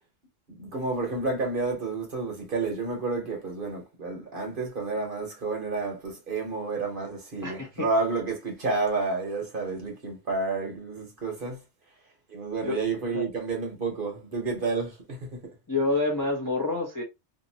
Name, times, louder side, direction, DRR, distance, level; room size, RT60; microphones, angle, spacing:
voice 1, 0.5-11.6 12.3-15.4, right 3 dB, 50° right, 1.0 m, -30 dB
voice 2, 7.4-7.9 12.6-12.8 13.1-13.3 15.7-17.0, left 2 dB, 20° left, 0.6 m, -27 dB
2.7 x 2.5 x 2.7 m
omnidirectional pair, 1.3 m